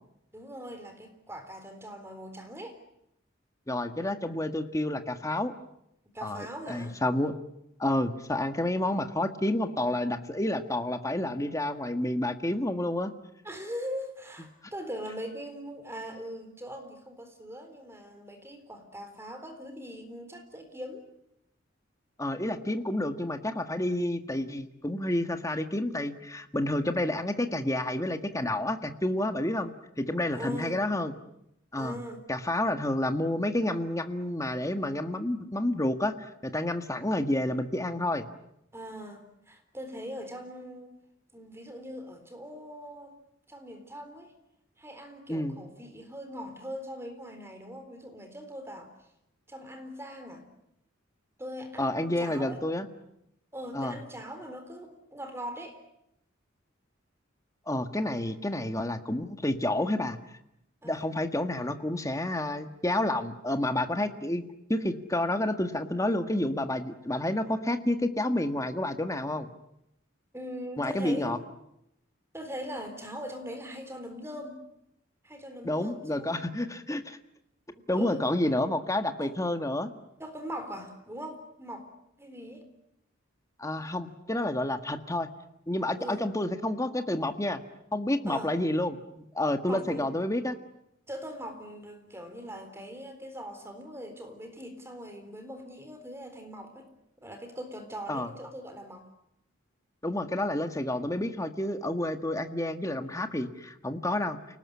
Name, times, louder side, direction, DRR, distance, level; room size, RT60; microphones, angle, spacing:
voice 1, 0.3-2.8 6.1-7.0 13.4-21.0 30.3-30.8 31.8-32.2 38.7-41.0 41.3-43.2 43.5-44.3 44.8-48.9 49.5-50.4 51.4-52.6 53.5-55.8 60.8-61.0 70.3-71.4 72.3-74.6 75.2-76.4 77.8-78.3 79.2-79.4 80.2-81.9 82.2-82.7 86.0-86.2 88.3-88.5 89.7-90.1 91.1-96.9 97.2-99.1, equal, 15° right, 7 dB, 3.9 m, -41 dB
voice 2, 3.7-5.5 6.2-7.4 7.8-13.1 22.2-29.7 30.0-31.1 31.7-32.0 32.3-38.3 45.3-45.6 51.8-52.9 53.7-54.0 57.7-60.2 60.8-64.4 64.7-69.5 70.8-71.4 75.6-77.2 77.9-79.9 83.6-85.3 85.7-87.6 87.9-89.0 89.3-90.6 98.1-98.3 100.0-104.6, left 1 dB, 15° left, 8 dB, 1.7 m, -29 dB
29.0 x 19.5 x 9.9 m, 0.80 s
head